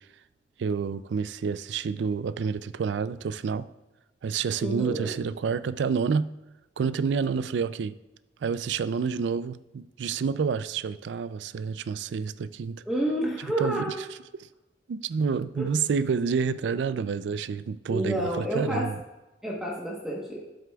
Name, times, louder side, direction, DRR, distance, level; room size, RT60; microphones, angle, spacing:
voice 1, 0.6-3.7 4.2-6.3 6.8-8.0 8.4-12.8 13.6-13.9 14.9-19.0, right 5 dB, 80° right, 15 dB, 0.4 m, -28 dB
voice 2, 4.6-5.1 12.9-14.0 15.6-15.7 17.9-18.9 19.4-20.4, right 1 dB, 5° right, -4 dB, 1.1 m, -29 dB
12.5 x 7.9 x 2.3 m, 1.0 s
head